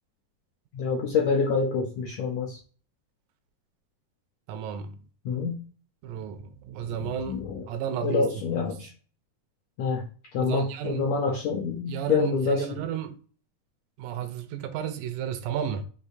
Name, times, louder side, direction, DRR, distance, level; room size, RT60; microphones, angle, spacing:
voice 1, 0.7-2.6 5.2-5.6 7.0-7.7 8.0-8.9 9.8-10.0 10.3-12.8, left 5 dB, 75° left, 1.6 m, -27 dB
voice 2, 4.5-5.0 6.0-7.4 7.7-8.3 10.4-11.1 11.9-13.2 14.0-15.8, right 9 dB, 80° right, 1.8 m, -32 dB
6.4 x 2.7 x 2.6 m
omnidirectional pair, 3.7 m